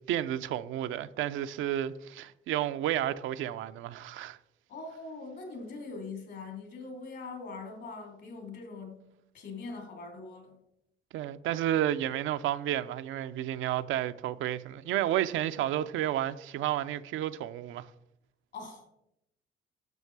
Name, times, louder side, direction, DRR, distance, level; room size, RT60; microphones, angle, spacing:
voice 1, 0.1-4.4 11.1-17.9, right 12 dB, 85° right, 0.5 m, -31 dB
voice 2, 4.7-9.0 9.3-10.6 18.5-18.9, left 3 dB, 65° left, 3.1 m, -42 dB
12.0 x 6.4 x 4.7 m
cardioid pair, 90°, 20 cm